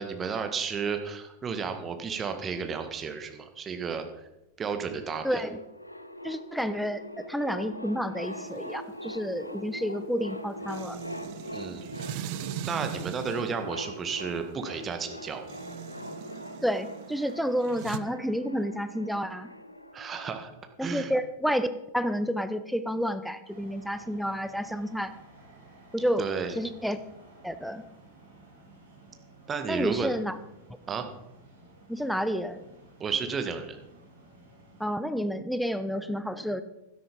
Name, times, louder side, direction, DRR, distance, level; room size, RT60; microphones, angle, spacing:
voice 1, 0.0-4.0 4.6-5.4 11.5-12.3 12.7-15.4 19.9-20.5 20.8-21.1 26.2-26.6 29.5-30.1 30.9-31.1 33.0-33.8, right 5 dB, 20° right, 7 dB, 1.6 m, -32 dB
voice 2, 5.2-5.6 6.2-11.0 16.6-19.5 20.8-21.7 21.9-25.1 25.9-26.3 26.6-27.0 27.4-27.8 29.7-30.3 31.9-32.6 34.8-36.6, equal, ahead, 11 dB, 0.9 m, -30 dB
sound 1, 5.3-21.0, equal, 85° left, 0.7 m, -42 dB
sound 2, 8.3-18.0, right 10 dB, 45° right, 0.7 m, -41 dB
sound 3, 23.4-34.9, right 2 dB, 70° right, 4.6 m, -54 dB
12.5 x 10.5 x 5.3 m, 0.92 s
figure-of-eight pair, 90°, 0 cm